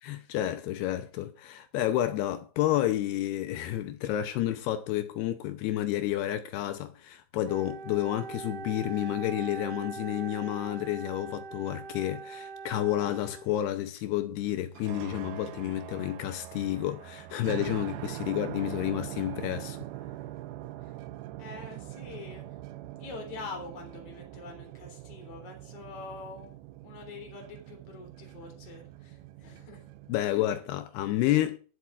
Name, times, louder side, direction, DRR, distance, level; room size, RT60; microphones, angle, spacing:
voice 1, 0.0-19.8 30.1-31.6, left 13 dB, 80° left, 2.5 m, -30 dB
Wind instrument woodwind instrument, 7.4-13.8, right 5 dB, 45° right, 2.2 m, -42 dB
sound 1, 14.6-30.2, right 14 dB, 80° right, 2.3 m, -43 dB
voice 2, 18.2-18.7 20.8-20.9 21.4-22.5 23.0-26.6 26.8-29.8, left 4 dB, 35° left, 3.8 m, -45 dB
22.5 x 7.6 x 2.4 m
omnidirectional pair, 5.1 m